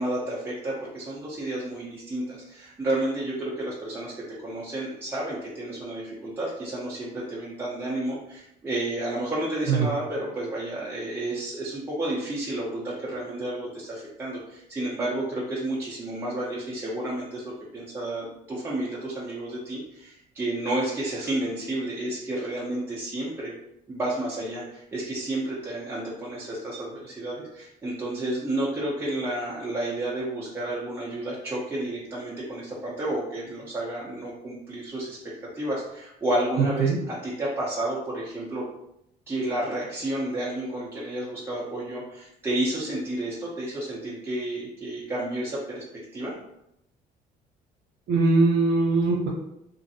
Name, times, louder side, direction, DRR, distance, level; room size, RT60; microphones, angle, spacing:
voice 1, 0.0-23.5 23.9-35.2 35.5-38.6 39.3-45.8 46.1-46.3, right 1 dB, 15° right, -7 dB, 0.7 m, -31 dB
voice 2, 36.6-37.0 48.1-49.3, right 3 dB, 75° right, -3 dB, 0.6 m, -21 dB
2.9 x 2.6 x 2.7 m, 0.79 s
cardioid pair, 110°, 17 cm